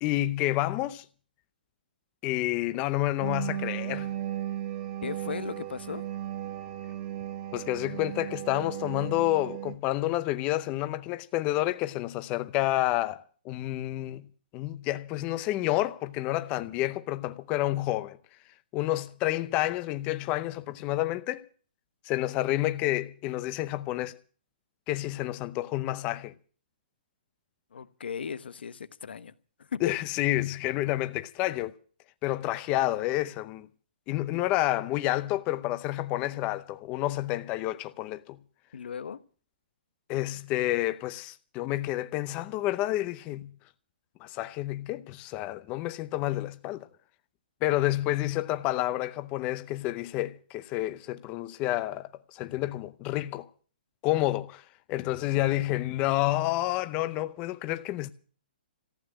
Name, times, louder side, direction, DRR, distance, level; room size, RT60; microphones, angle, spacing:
voice 1, 0.0-1.0 2.2-4.1 7.5-14.3 14.5-18.2 18.7-21.5 22.0-24.2 24.9-26.3 29.8-31.7 32.2-33.7 34.1-38.4 40.1-43.5 44.2-46.9 47.6-53.5 54.0-54.6 54.9-58.1, left 16 dB, 20° left, 0.7 m, -29 dB
sound 1, 3.2-9.7, right 12 dB, 30° right, 1.4 m, -36 dB
voice 2, 5.0-6.0 27.7-29.8 38.7-39.2, left 7 dB, 75° left, 1.1 m, -37 dB
14.5 x 8.8 x 9.9 m
hypercardioid pair, 160°, 6 cm